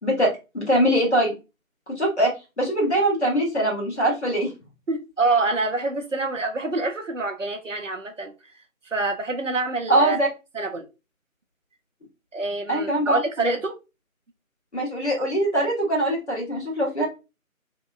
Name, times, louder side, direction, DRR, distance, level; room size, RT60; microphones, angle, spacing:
voice 1, 0.0-1.3 1.9-4.5 9.9-10.3 12.7-13.2 14.7-17.0, right 1 dB, 50° left, 1.3 m, -22 dB
voice 2, 4.9-8.3 8.9-10.2 10.5-10.9 12.3-13.7, right 3 dB, 65° right, 0.5 m, -26 dB
2.8 x 2.1 x 2.3 m
figure-of-eight pair, 170°, 42 cm